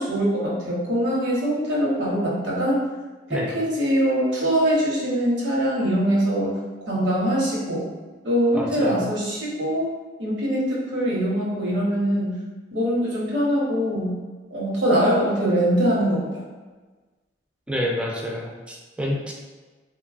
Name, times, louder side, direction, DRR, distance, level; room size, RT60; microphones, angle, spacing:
voice 1, 0.0-2.8 3.3-6.6 6.9-7.8 8.2-9.9 10.2-12.3 12.7-14.2 14.5-16.4, equal, 85° right, -5 dB, 0.8 m, -23 dB
voice 2, 8.5-9.0 17.7-19.3, equal, 5° right, -2 dB, 0.3 m, -28 dB
3.0 x 2.2 x 2.4 m, 1.3 s
head